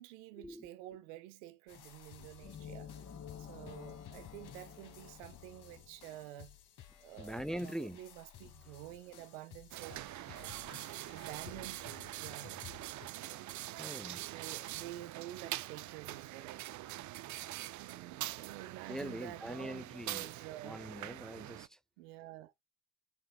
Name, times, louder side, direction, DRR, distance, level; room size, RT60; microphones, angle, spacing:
voice 1, 0.0-2.9 3.4-6.6 7.0-10.0 10.3-10.6 11.1-12.7 14.2-17.0 17.7-20.8 22.0-22.5, right 14 dB, 90° right, 1.2 m, -50 dB
sound 1, 1.7-13.1, left 11 dB, 65° left, 2.4 m, -56 dB
sound 2, 2.4-6.2, left 7 dB, 50° left, 2.6 m, -50 dB
voice 2, 7.2-8.0 13.8-14.3 18.9-20.3 20.6-21.8, equal, ahead, 0.5 m, -42 dB
sound 3, 9.7-21.7, right 15 dB, 55° right, 0.6 m, -44 dB
7.2 x 6.5 x 2.3 m
supercardioid pair, 70°, 34 cm